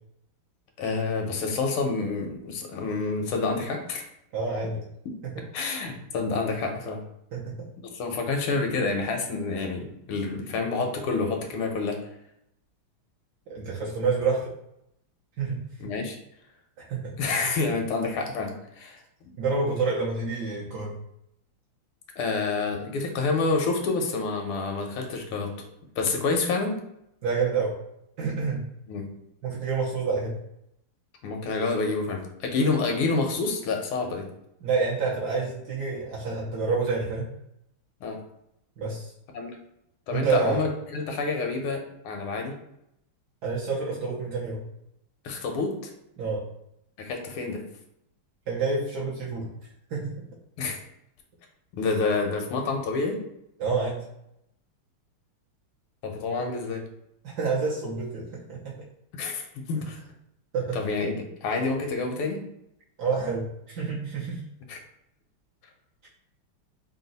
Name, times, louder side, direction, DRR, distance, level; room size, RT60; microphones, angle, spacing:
voice 1, 0.8-4.0 5.5-7.0 7.9-12.0 15.8-16.2 17.2-19.3 22.2-25.5 26.0-26.8 28.9-29.1 31.2-34.3 38.0-38.2 39.3-39.5 40.1-42.5 45.2-45.9 47.0-47.6 50.6-50.8 51.7-53.2 56.0-56.8 59.1-59.4 59.7-60.0 60.7-62.4 64.7-64.8, left 3 dB, 80° left, 3 dB, 1.5 m, -28 dB
voice 2, 4.3-4.8 7.3-7.7 13.5-14.5 15.4-15.6 16.9-17.1 19.4-20.9 27.2-27.8 28.2-28.7 29.4-30.4 34.6-37.3 38.8-39.1 40.1-40.6 43.4-44.6 46.2-46.5 48.5-49.5 49.9-50.3 53.6-54.0 57.2-58.7 60.5-60.8 63.0-64.4, right 4 dB, 60° right, -5 dB, 1.1 m, -28 dB
4.0 x 2.2 x 3.9 m, 0.79 s
omnidirectional pair, 2.4 m